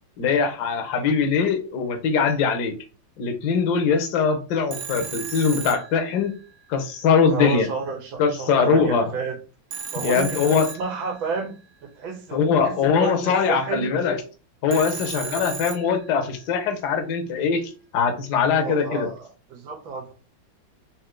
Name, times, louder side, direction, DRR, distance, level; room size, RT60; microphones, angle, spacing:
voice 1, 0.2-2.7 3.2-6.3 6.7-7.7 8.2-9.1 10.0-10.7 12.3-14.2 14.6-19.1, left 5 dB, 65° left, 1.3 m, -22 dB
Telephone, 4.7-6.6 9.7-11.5 14.7-16.4, right 7 dB, 70° right, 1.1 m, -35 dB
voice 2, 7.3-9.4 9.9-13.9 14.9-15.0 15.3-15.4 18.5-20.1, right 5 dB, 90° right, 1.7 m, -31 dB
4.4 x 2.8 x 3.6 m
omnidirectional pair, 2.1 m